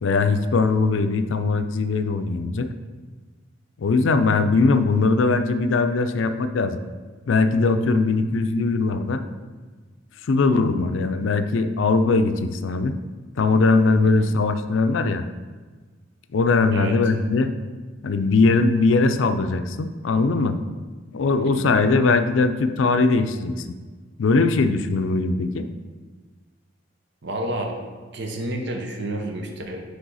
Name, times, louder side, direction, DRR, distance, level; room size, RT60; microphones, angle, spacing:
voice 1, 0.0-2.7 3.8-6.8 7.3-9.2 10.3-13.0 13.4-15.2 16.3-17.5 18.0-20.6 21.1-23.7 24.2-25.7, left 3 dB, 80° left, 9 dB, 0.5 m, -20 dB
voice 2, 27.2-27.8 28.1-29.8, right 1 dB, 65° right, 2 dB, 0.8 m, -30 dB
9.4 x 3.4 x 4.1 m, 1.4 s
head